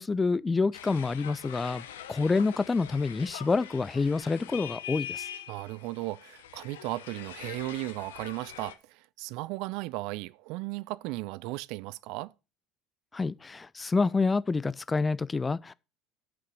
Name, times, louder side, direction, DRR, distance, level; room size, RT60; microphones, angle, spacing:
voice 1, 0.0-5.3 13.1-15.7, left 4 dB, 20° left, 0.4 m, -28 dB
sound 1, 0.7-8.7, left 10 dB, 75° left, 0.9 m, -43 dB
voice 2, 5.5-12.3, right 20 dB, 60° right, 0.4 m, -36 dB
7.7 x 5.9 x 6.1 m
hypercardioid pair, 70°, 0 cm